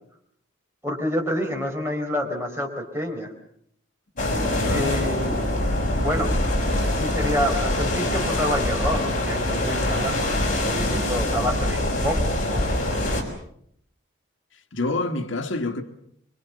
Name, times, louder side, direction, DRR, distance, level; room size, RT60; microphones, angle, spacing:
voice 1, 0.8-3.3 4.7-5.5 5.9-6.4 6.9-10.4 10.7-12.2 12.5-12.9, equal, 10° right, 4.4 m, -28 dB
sound 1, 4.2-13.2, left 1 dB, 40° left, 5.3 m, -24 dB
voice 2, 14.7-15.8, left 2 dB, 70° left, 1.7 m, -27 dB
25.5 x 24.0 x 7.1 m
head